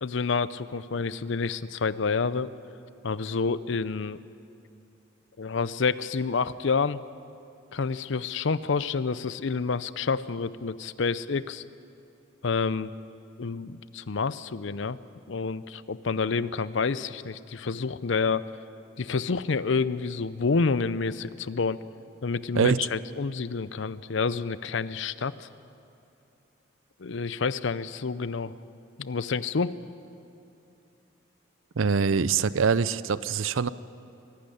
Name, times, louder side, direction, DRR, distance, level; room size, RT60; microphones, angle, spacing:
voice 1, 0.0-2.5 3.0-4.2 5.4-7.0 7.7-11.6 12.4-12.9 13.4-15.0 15.3-18.5 19.0-21.8 22.2-25.5 27.0-28.5 29.0-29.8, left 4 dB, 65° left, 16 dB, 0.6 m, -28 dB
voice 2, 31.8-33.7, right 5 dB, 75° right, 17 dB, 0.5 m, -24 dB
23.0 x 12.0 x 10.0 m, 2.8 s
head